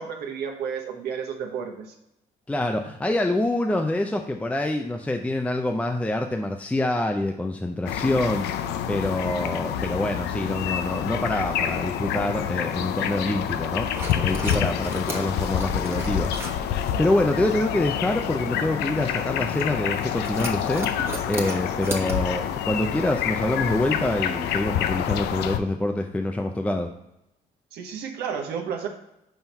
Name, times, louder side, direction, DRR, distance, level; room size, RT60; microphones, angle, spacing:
voice 1, 0.0-1.9 27.7-28.9, right 7 dB, 70° right, 2 dB, 1.1 m, -32 dB
voice 2, 2.5-20.9 21.3-26.9, left 1 dB, 10° left, 4 dB, 0.5 m, -26 dB
sound 1, 7.9-25.6, left 9 dB, 80° left, 0.5 m, -28 dB
sound 2, 13.9-22.2, right 2 dB, 15° right, 1.1 m, -37 dB
5.7 x 4.4 x 5.3 m, 0.84 s
cardioid pair, 110°, 17 cm